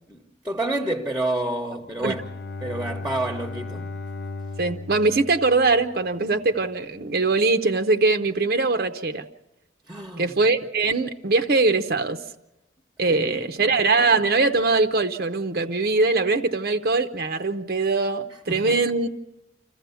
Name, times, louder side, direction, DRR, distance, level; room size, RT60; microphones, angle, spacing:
voice 1, 0.1-2.2 2.6-3.9 9.9-10.3 13.1-13.5 18.5-18.8, right 2 dB, 5° right, 1.0 m, -29 dB
Bowed string instrument, 1.8-6.4, left 3 dB, 65° left, 0.8 m, -36 dB
voice 2, 4.6-9.2 10.2-12.2 13.0-19.1, right 3 dB, 60° right, 0.7 m, -22 dB
26.5 x 14.5 x 6.9 m
head